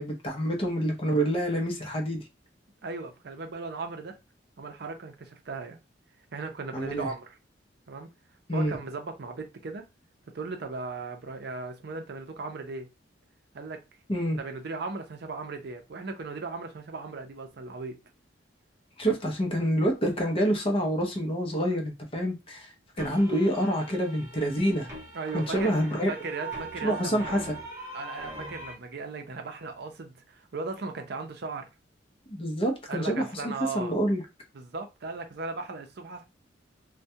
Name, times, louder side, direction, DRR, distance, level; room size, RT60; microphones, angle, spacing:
voice 1, 0.0-2.2 6.7-7.1 8.5-8.8 14.1-14.4 19.0-22.7 23.0-24.9 25.3-26.1 26.8-27.6 32.3-34.2, equal, 30° left, 0.7 m, -27 dB
voice 2, 2.8-4.2 4.6-5.8 6.3-7.4 7.9-8.1 8.5-9.9 10.3-12.9 13.5-13.8 14.4-18.0 25.1-25.7 26.1-27.3 27.9-31.7 32.9-33.9 34.5-36.2, right 3 dB, 60° right, 0.5 m, -37 dB
sound 1, 23.0-28.7, right 3 dB, 15° right, 0.8 m, -41 dB
2.3 x 2.2 x 2.7 m
head